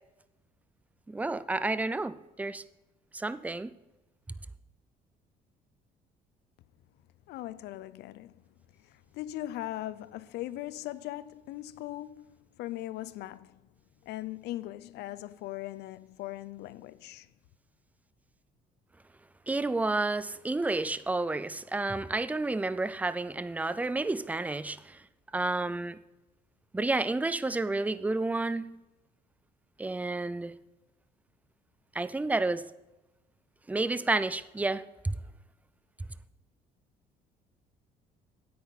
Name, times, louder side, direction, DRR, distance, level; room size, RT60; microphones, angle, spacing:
voice 1, 1.1-2.6 3.1-3.7 19.5-25.0 25.3-26.0 26.7-28.7 29.8-30.5 31.9-32.6 33.7-35.2, right 2 dB, 10° right, 0.5 m, -30 dB
voice 2, 7.3-8.4 8.8-13.6 14.0-17.3, left 15 dB, 80° left, 0.6 m, -40 dB
9.6 x 8.7 x 4.1 m
cardioid pair, 110°, 17 cm